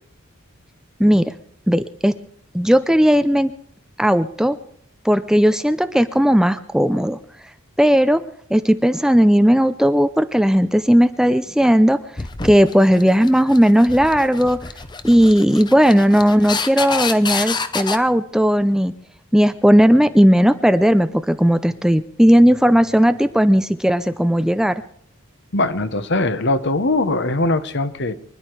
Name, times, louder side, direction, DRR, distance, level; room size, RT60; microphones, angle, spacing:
voice 1, 1.0-1.3 1.7-2.1 2.5-3.5 4.0-4.6 5.0-7.2 7.8-8.2 8.5-12.0 12.4-14.6 15.0-18.9 19.3-24.7, equal, 5° right, 11 dB, 0.5 m, -16 dB
sound 1, 12.2-18.0, left 4 dB, 20° left, 0.8 m, -28 dB
voice 2, 25.5-28.1, left 2 dB, 55° left, 11 dB, 1.2 m, -21 dB
25.0 x 11.0 x 4.7 m, 0.63 s
head